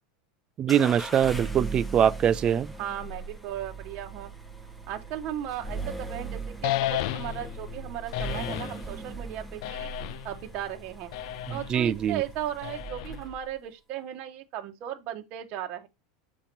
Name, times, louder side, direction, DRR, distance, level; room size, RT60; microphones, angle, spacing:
voice 1, 0.6-2.7 11.5-12.2, right 9 dB, 25° right, 0.3 m, -23 dB
sound 1, 0.7-13.5, right 3 dB, ahead, 0.8 m, -39 dB
voice 2, 2.8-4.3 4.9-9.9 10.2-11.1 11.5-15.9, right 11 dB, 45° right, 1.0 m, -36 dB
sound 2, 6.6-7.5 8.1-8.8 9.6-10.4 11.1-11.7 12.6-13.3, left 15 dB, 65° left, 0.4 m, -32 dB
7.2 x 2.9 x 5.2 m
supercardioid pair, 140°, 3 cm